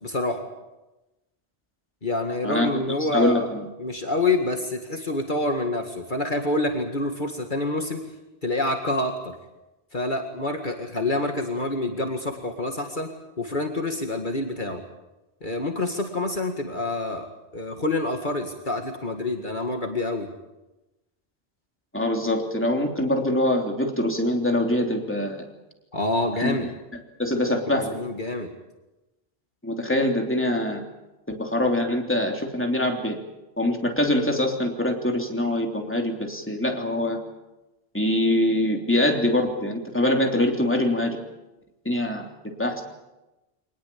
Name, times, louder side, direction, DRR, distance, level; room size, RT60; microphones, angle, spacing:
voice 1, 0.0-0.4 2.0-3.5 3.8-8.0 8.4-9.4 9.9-13.1 13.4-14.8 15.4-17.3 17.5-20.3 25.9-26.7 27.7-28.5, left 2 dB, 50° left, 4 dB, 2.2 m, -27 dB
voice 2, 3.0-3.7 21.9-25.4 26.4-26.6 27.2-28.0 29.6-30.8 31.3-33.2 33.6-37.2 37.9-41.2 41.8-42.3 42.6-42.8, left 1 dB, 10° left, 2 dB, 3.2 m, -24 dB
24.5 x 19.5 x 8.6 m, 1.0 s
omnidirectional pair, 1.1 m